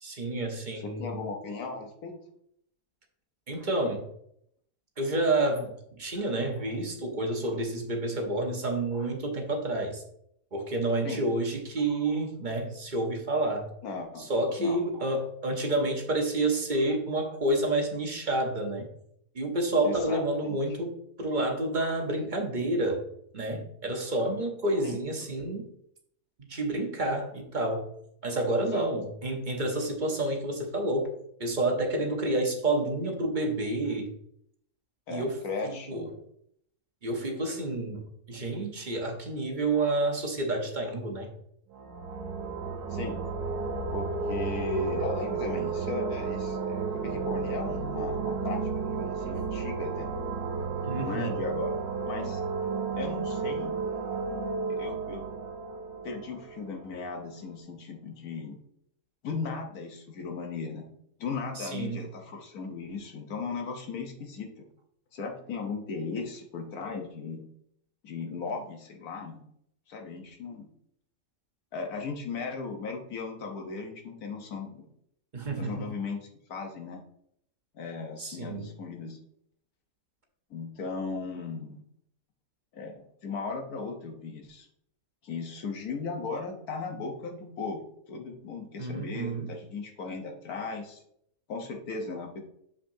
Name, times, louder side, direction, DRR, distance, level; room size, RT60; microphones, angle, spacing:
voice 1, 0.0-1.2 3.5-4.0 5.0-10.0 10.5-13.6 14.2-18.9 19.3-20.9 21.2-23.0 23.3-25.7 26.5-27.9 28.2-31.1 31.4-34.1 35.1-35.4 35.6-36.1 37.0-38.0 38.3-41.3 50.8-51.4 61.6-62.0 75.3-75.8 78.2-78.7 88.8-89.5, right 2 dB, 35° right, 2 dB, 0.9 m, -29 dB
voice 2, 0.8-2.2 11.0-11.2 13.8-14.3 14.6-14.8 19.8-20.6 24.8-25.0 28.7-28.9 35.1-36.1 42.9-43.2 43.9-50.1 50.9-51.7 52.1-52.4 53.0-53.8 54.7-55.3 56.0-58.6 59.2-60.9 61.2-64.7 65.1-67.4 68.0-69.4 69.9-70.7 71.7-74.9 75.6-77.0 77.7-79.2 80.5-81.8 82.7-84.7 85.2-87.8 88.1-91.0 91.5-92.4, left 4 dB, 70° left, 3 dB, 1.5 m, -36 dB
sound 1, 41.7-57.3, right 5 dB, 90° right, 1.4 m, -33 dB
6.8 x 5.8 x 2.7 m, 0.71 s
omnidirectional pair, 1.7 m